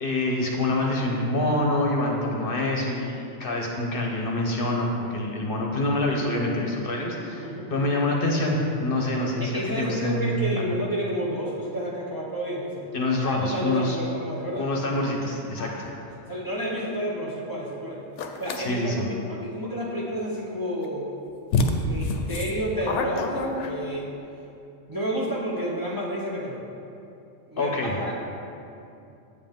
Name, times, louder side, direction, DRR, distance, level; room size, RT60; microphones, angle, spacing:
voice 1, 0.0-10.7 12.9-14.0 14.6-15.7 18.6-19.1 27.6-27.9, left 1 dB, 50° left, 0 dB, 1.0 m, -26 dB
voice 2, 7.4-7.9 9.4-12.9 13.2-14.7 15.6-15.8 16.1-18.1 18.4-21.1 21.8-24.1 24.9-26.6 27.5-28.1, equal, 20° right, -4 dB, 0.8 m, -30 dB
sound 1, 18.2-18.6 20.8-20.9 21.5-24.1, left 3 dB, 75° left, 0.9 m, -26 dB
8.3 x 7.6 x 3.6 m, 2.7 s
omnidirectional pair, 1.3 m